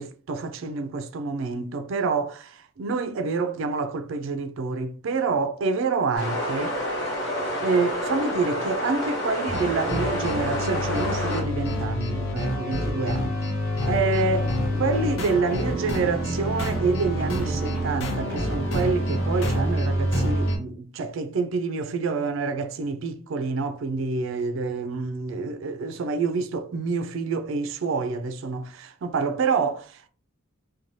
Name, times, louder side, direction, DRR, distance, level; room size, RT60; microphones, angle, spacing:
voice 1, 0.0-6.8 7.6-13.4 13.9-30.1, right 4 dB, 70° right, 0.4 m, -27 dB
sound 1, 6.1-11.4, left 1 dB, 55° left, 1.1 m, -29 dB
sound 2, 9.5-20.6, equal, 80° left, 0.7 m, -27 dB
sound 3, 13.8-19.8, left 1 dB, 15° left, 0.9 m, -37 dB
2.6 x 2.2 x 3.0 m
head